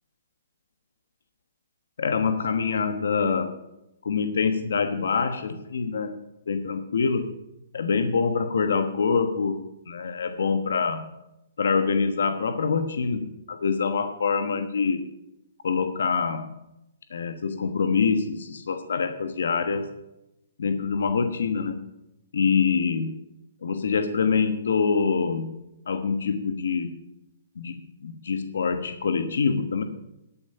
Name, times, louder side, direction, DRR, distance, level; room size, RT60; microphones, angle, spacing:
voice 1, 2.0-3.5 4.0-6.2 6.5-7.3 7.7-11.1 11.6-15.1 15.6-16.5 17.1-19.9 20.6-21.8 22.3-23.2 23.6-25.5 25.9-27.0 27.6-29.8, left 5 dB, 80° left, 8 dB, 1.2 m, -25 dB
13.0 x 8.6 x 5.7 m, 0.88 s
hypercardioid pair, 160°, 0 cm